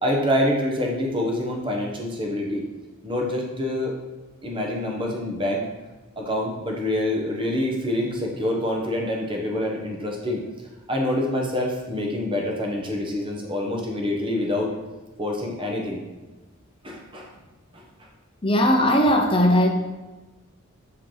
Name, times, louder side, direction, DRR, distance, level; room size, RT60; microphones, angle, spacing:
voice 1, 0.0-2.6 3.0-3.9 4.4-5.7 6.2-10.4 10.9-14.7 15.2-16.0 16.8-17.3 17.7-17.8, left 1 dB, 25° right, 0 dB, 1.0 m, -26 dB
voice 2, 18.4-19.7, equal, 25° left, 2 dB, 0.7 m, -18 dB
6.5 x 4.5 x 3.9 m, 1.2 s
head